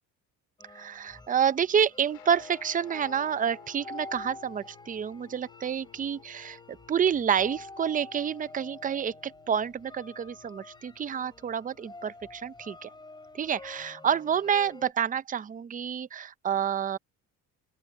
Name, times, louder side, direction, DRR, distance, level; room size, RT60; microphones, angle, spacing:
sound 1, 0.6-14.9, left 2 dB, 10° left, 6.0 m, -48 dB
voice 1, 0.7-6.6 6.9-12.9 13.3-17.0, right 8 dB, 25° right, 0.6 m, -28 dB
Guitar, 2.1-13.6, left 17 dB, 85° left, 3.7 m, -57 dB
open air
cardioid pair, 120°, 35 cm